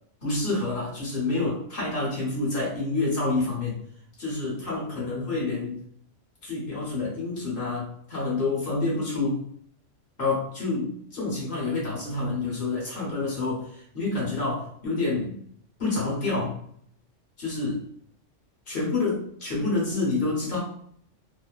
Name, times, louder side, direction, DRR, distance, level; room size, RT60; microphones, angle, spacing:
voice 1, 0.2-3.8 4.2-5.8 6.4-9.4 10.2-15.3 15.8-16.6 17.4-17.8 18.7-20.6, left 3 dB, 45° left, -4 dB, 1.2 m, -28 dB
2.8 x 2.1 x 2.3 m, 0.63 s
omnidirectional pair, 1.3 m